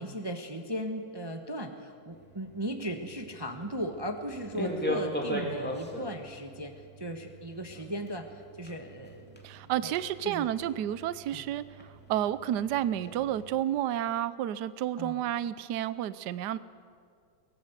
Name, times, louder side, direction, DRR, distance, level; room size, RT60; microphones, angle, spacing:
voice 1, 0.0-9.4 9.8-9.9 10.2-10.7 11.3-11.5 15.0-15.2, equal, 15° right, 5 dB, 1.1 m, -37 dB
sound 1, 2.1-13.5, equal, 5° left, 2.7 m, -40 dB
voice 2, 9.4-11.6 12.1-16.6, right 11 dB, 70° right, 16 dB, 1.2 m, -30 dB
23.0 x 19.0 x 8.2 m, 2.2 s
omnidirectional pair, 2.0 m